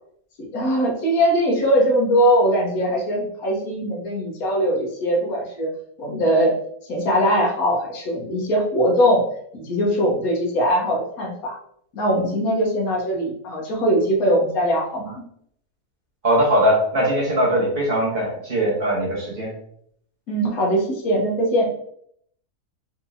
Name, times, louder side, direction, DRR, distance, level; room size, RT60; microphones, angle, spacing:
voice 1, 0.4-5.7 6.0-6.5 6.9-9.2 9.5-11.5 11.9-15.2 20.3-21.7, equal, 70° left, -2 dB, 1.4 m, -21 dB
voice 2, 16.2-19.5, equal, 35° right, -4 dB, 1.3 m, -20 dB
4.5 x 2.7 x 2.6 m, 0.68 s
omnidirectional pair, 1.6 m